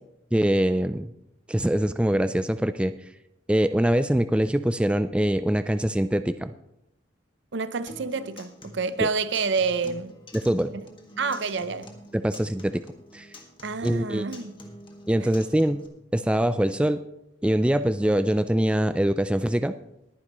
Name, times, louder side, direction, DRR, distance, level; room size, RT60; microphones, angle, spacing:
voice 1, 0.3-1.1 1.5-2.9 3.5-6.5 10.3-10.7 12.1-12.8 13.1-13.3 13.8-14.3 15.1-15.8 16.1-17.0 17.4-19.7, right 1 dB, 5° right, 0.3 m, -23 dB
voice 2, 7.5-10.2 11.2-11.9 13.6-14.5, right 4 dB, 65° right, 0.7 m, -28 dB
Acoustic guitar, 7.9-15.9, left 1 dB, 25° left, 1.8 m, -46 dB
20.5 x 9.8 x 3.0 m
head